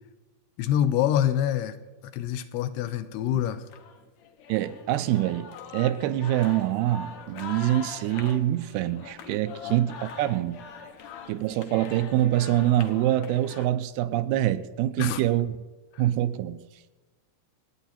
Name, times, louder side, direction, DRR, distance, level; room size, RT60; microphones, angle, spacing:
voice 1, 0.6-3.6 9.6-9.8 15.0-15.2, left 10 dB, 85° left, 2.8 m, -26 dB
sound 1, 3.7-13.6, left 6 dB, 70° left, 1.8 m, -42 dB
voice 2, 4.5-10.6 11.3-15.5 16.0-16.7, right 13 dB, 80° right, 2.5 m, -25 dB
27.0 x 9.3 x 4.3 m
omnidirectional pair, 4.6 m